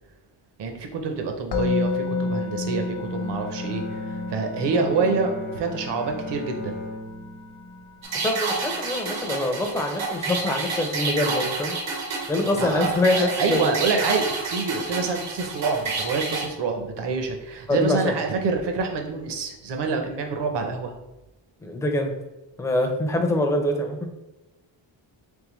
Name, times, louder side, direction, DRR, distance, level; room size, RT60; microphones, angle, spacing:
voice 1, 0.6-6.8 12.5-20.9, right 4 dB, 60° right, 4 dB, 0.7 m, -27 dB
Musical instrument, 1.5-12.6, left 3 dB, 55° left, 0.7 m, -33 dB
Bowed string instrument, 2.8-8.0, left 2 dB, 70° left, 1.0 m, -37 dB
sound 1, 8.0-16.5, right 4 dB, 80° right, 1.0 m, -29 dB
voice 2, 8.2-11.7 12.3-13.7 17.7-18.1 21.6-22.1 22.6-24.1, left 1 dB, 5° left, 3 dB, 0.4 m, -24 dB
3.6 x 3.2 x 3.1 m, 1.0 s
wide cardioid pair, 135°, 47 cm